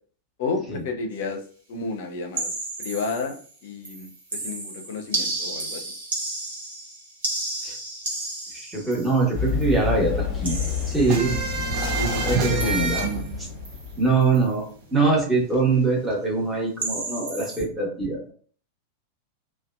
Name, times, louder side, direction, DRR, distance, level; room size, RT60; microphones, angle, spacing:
voice 1, 0.4-1.4 1.7-2.5 2.8-5.8 11.8-13.3, left 4 dB, 50° left, 5 dB, 0.5 m, -31 dB
sound 1, 2.3-3.5 3.8-9.8 10.4-11.4 12.6-13.3 13.6-13.9 14.2-14.5 16.8-17.6, right 2 dB, 70° right, 0.9 m, -33 dB
voice 2, 8.7-10.6 10.9-11.3 12.2-13.0 14.0-14.7 14.9-18.3, right 3 dB, 5° right, -4 dB, 1.0 m, -23 dB
Run, 9.3-14.1, left 6 dB, 25° left, 0.9 m, -29 dB
sound 2, 11.1-14.4 14.7-14.8 15.1-16.1, right 5 dB, 40° right, 0.5 m, -28 dB
2.6 x 2.2 x 2.3 m, 0.43 s
figure-of-eight pair, 90°, 0 cm